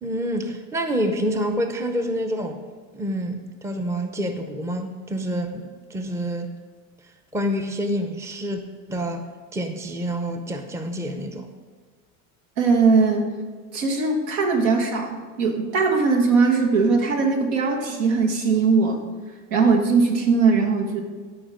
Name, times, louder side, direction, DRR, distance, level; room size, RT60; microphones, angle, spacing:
voice 1, 0.0-2.6 2.9-6.5 7.3-8.6 8.9-9.2 9.5-11.5, equal, 5° right, 6 dB, 0.6 m, -27 dB
voice 2, 12.6-13.3 13.7-19.0 19.5-21.0, right 4 dB, 80° right, 2 dB, 1.9 m, -20 dB
13.0 x 5.1 x 5.0 m, 1.5 s
supercardioid pair, 120°, 39 cm